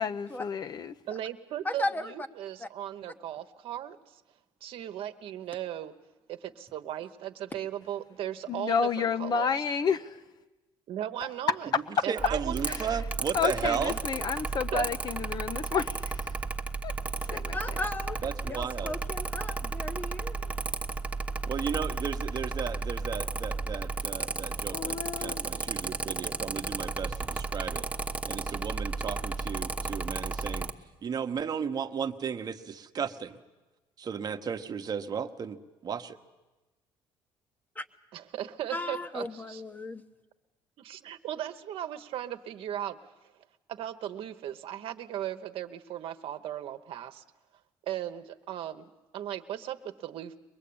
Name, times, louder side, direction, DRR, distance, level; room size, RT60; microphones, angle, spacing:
voice 1, 0.0-0.9 8.5-10.2 12.7-12.8 13.3-16.1 16.8-16.9 17.3-17.7 24.7-25.4, left 6 dB, 45° left, 11 dB, 0.8 m, -30 dB
voice 2, 1.1-4.1 4.6-5.9 6.3-9.5 10.9-11.7 12.0-12.8 13.6-13.7 14.7-14.9 38.1-39.6 40.8-43.0 43.7-47.2 47.9-50.4, right 11 dB, 65° right, 8 dB, 1.1 m, -37 dB
voice 3, 1.6-2.1 2.6-2.7 17.3-18.2 18.4-20.5 37.8-37.9 38.7-40.0, left 2 dB, 15° left, 10 dB, 1.0 m, -35 dB
voice 4, 12.1-14.0 18.2-18.9 21.5-27.9 28.2-30.7 31.0-33.4 34.0-35.6 35.8-36.2, right 7 dB, 40° right, 8 dB, 1.1 m, -34 dB
Mechanical fan, 12.2-30.7, right 3 dB, 15° right, 1.1 m, -34 dB
23.5 x 20.0 x 8.7 m, 1.1 s
cardioid pair, 95°, 10 cm